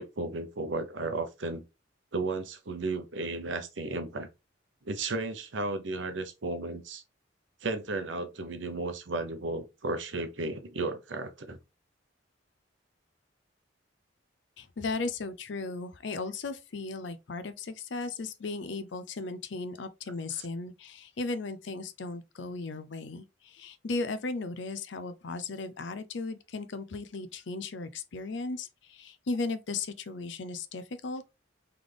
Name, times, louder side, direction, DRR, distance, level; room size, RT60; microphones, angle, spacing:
voice 1, 0.0-1.6 2.1-4.3 4.8-7.0 7.6-11.6 20.3-20.4, right 2 dB, 70° right, 0.8 m, -34 dB
voice 2, 14.6-31.2, left 3 dB, 65° left, 0.5 m, -36 dB
3.9 x 3.3 x 3.4 m
head